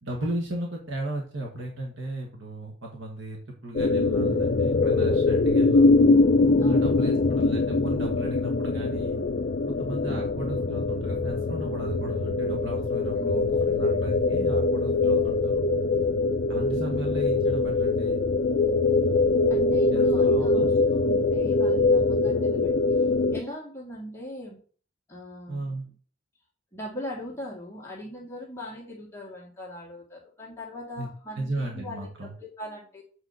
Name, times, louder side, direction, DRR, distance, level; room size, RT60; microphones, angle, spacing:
voice 1, 0.0-5.9 6.6-9.2 9.7-15.6 16.5-18.2 19.9-20.7 25.5-25.8 31.0-31.1 31.4-32.3, right 1 dB, 65° right, -1 dB, 1.5 m, -35 dB
sound 1, 3.7-23.4, left 3 dB, 45° left, 0.5 m, -23 dB
voice 2, 13.2-13.5 19.5-22.7 23.3-24.6 25.1-25.8 26.7-32.1 32.4-33.0, equal, 15° left, -4 dB, 2.0 m, -40 dB
8.0 x 5.0 x 4.0 m, 0.42 s
head